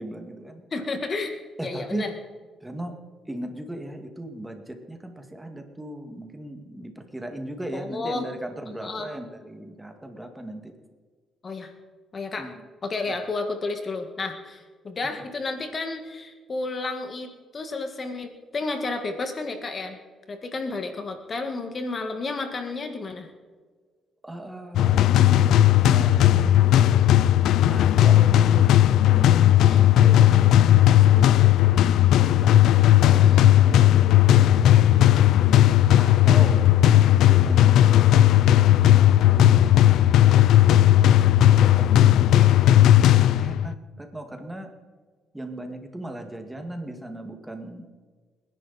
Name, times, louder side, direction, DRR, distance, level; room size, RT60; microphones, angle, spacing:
voice 1, 0.0-0.6 1.6-2.1 2.6-3.0 3.3-10.7 12.4-12.6 15.0-15.2 24.2-26.8 27.7-34.2 36.0-36.7 37.2-37.8 38.1-40.8 41.4-42.5 43.1-44.7 45.3-47.9, right 1 dB, 10° right, 5 dB, 2.1 m, -38 dB
voice 2, 0.7-1.3 1.6-2.1 7.7-8.3 8.8-9.1 11.4-11.7 12.1-12.5 12.8-20.0 20.3-23.3 29.6-29.9 33.1-33.5, left 3 dB, 40° left, 6 dB, 1.9 m, -31 dB
sound 1, 24.7-43.7, left 12 dB, 80° left, 0.5 m, -16 dB
28.0 x 11.0 x 4.3 m, 1.5 s
cardioid pair, 90°, 0 cm